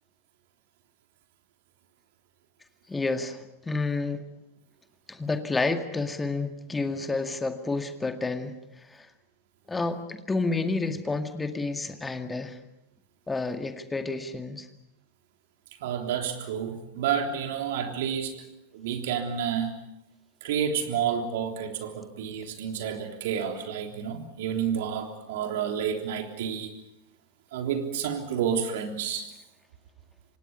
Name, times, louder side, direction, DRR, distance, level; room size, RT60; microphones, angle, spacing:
voice 1, 2.9-4.2 5.1-8.6 8.9-9.1 9.7-12.6 13.3-14.7, left 3 dB, 10° left, 7 dB, 2.0 m, -30 dB
voice 2, 15.8-18.4 18.7-19.7 20.4-26.7 27.5-29.3, right 8 dB, 55° right, 4 dB, 3.4 m, -30 dB
28.5 x 25.5 x 5.6 m, 0.85 s
figure-of-eight pair, 90°, 0 cm